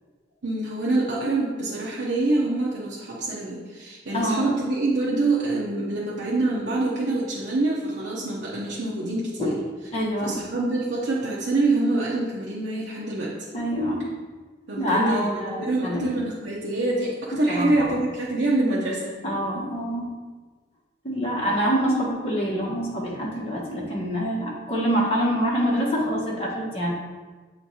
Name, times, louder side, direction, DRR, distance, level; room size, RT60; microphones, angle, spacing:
voice 1, 0.4-9.6 10.2-13.3 14.7-19.1, right 2 dB, 70° right, -5 dB, 0.8 m, -25 dB
voice 2, 4.1-4.5 9.4-9.5 9.9-10.3 13.5-14.0 14.8-16.1 17.5-18.0 19.2-20.0 21.0-26.9, equal, 30° left, -5 dB, 1.4 m, -25 dB
7.2 x 3.1 x 4.1 m, 1.4 s
head